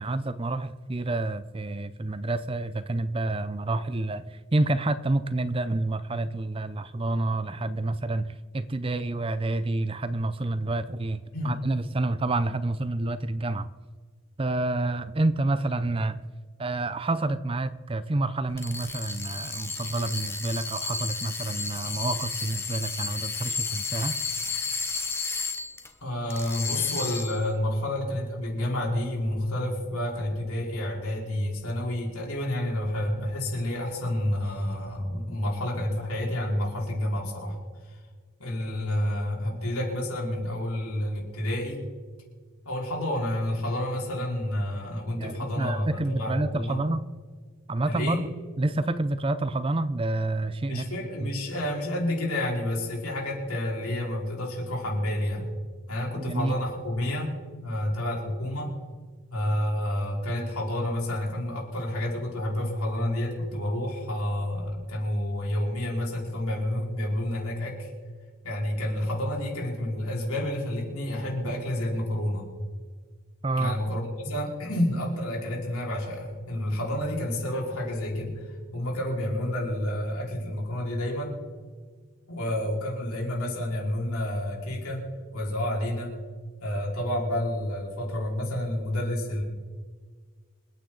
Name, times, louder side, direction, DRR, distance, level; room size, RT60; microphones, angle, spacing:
voice 1, 0.0-13.7 14.4-16.2 16.6-24.2 45.2-47.1 47.7-48.3 48.6-50.8 51.2-51.3 56.2-56.5 73.4-73.8, right 2 dB, 25° right, 13 dB, 0.5 m, -28 dB
sound 1, 18.5-25.9 26.3-27.5, left 4 dB, 10° left, 0.9 m, -32 dB
voice 2, 26.0-37.6 38.4-41.8 42.6-46.8 47.8-48.2 50.7-55.5 55.9-57.3 57.6-58.7 59.3-67.9 68.4-72.5 73.6-78.4 78.7-81.4 82.3-85.0 85.3-86.1 86.6-89.4, left 1 dB, 85° left, -2 dB, 4.9 m, -29 dB
27.5 x 9.3 x 4.0 m, 1.5 s
head